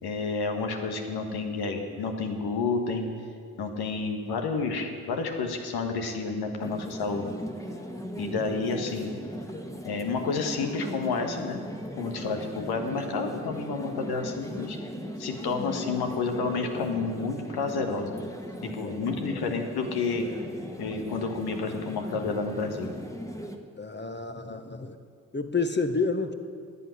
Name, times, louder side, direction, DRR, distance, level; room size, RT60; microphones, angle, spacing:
voice 1, 0.0-3.1 3.6-7.3 8.2-9.1 9.8-11.6 12.0-14.8 15.2-18.2 18.6-20.3 20.8-22.9, left 4 dB, 80° left, 4 dB, 1.5 m, -30 dB
sound 1, 6.6-23.6, equal, 10° left, 1.5 m, -38 dB
voice 2, 18.6-19.0 23.8-25.0 25.3-26.3, left 4 dB, 30° left, 8 dB, 1.3 m, -29 dB
10.5 x 8.5 x 9.8 m, 2.1 s
supercardioid pair, 40°, 38 cm